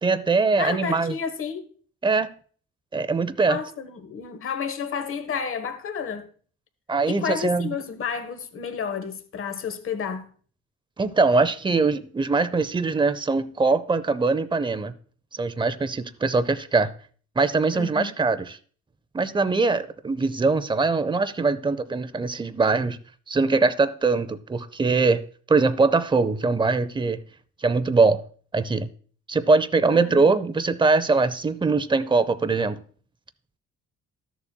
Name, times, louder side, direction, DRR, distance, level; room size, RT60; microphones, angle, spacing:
voice 1, 0.0-1.2 2.0-2.3 2.9-3.6 6.9-7.7 11.0-14.9 15.3-16.9 17.4-18.6 19.1-23.0 23.3-25.2 25.5-27.2 27.6-28.2 28.5-28.9 29.3-32.8, right 3 dB, 15° right, 0.6 m, -22 dB
voice 2, 0.6-1.6 3.5-6.3 7.1-10.3 17.7-18.1 29.9-30.3, left 6 dB, 45° left, 1.1 m, -31 dB
13.0 x 7.1 x 2.2 m
cardioid pair, 90°, 30 cm